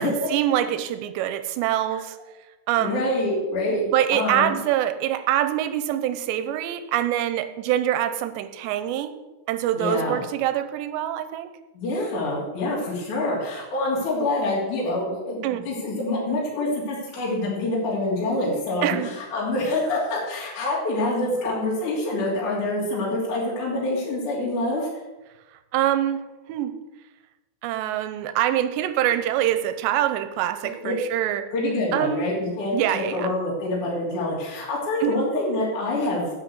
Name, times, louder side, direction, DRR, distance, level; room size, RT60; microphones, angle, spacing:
voice 1, 0.0-2.2 2.7-3.0 3.9-9.1 9.5-11.5 15.4-15.6 18.8-19.1 25.7-26.7 27.6-31.5 31.9-32.3 32.7-33.3 35.0-35.2, right 12 dB, 85° right, 11 dB, 2.9 m, -25 dB
voice 2, 2.8-3.8 4.1-4.6 9.7-10.2 11.7-24.9 30.8-31.0 31.5-36.3, left 2 dB, 45° left, -6 dB, 4.0 m, -26 dB
9.7 x 8.8 x 7.9 m, 1.1 s
omnidirectional pair, 5.0 m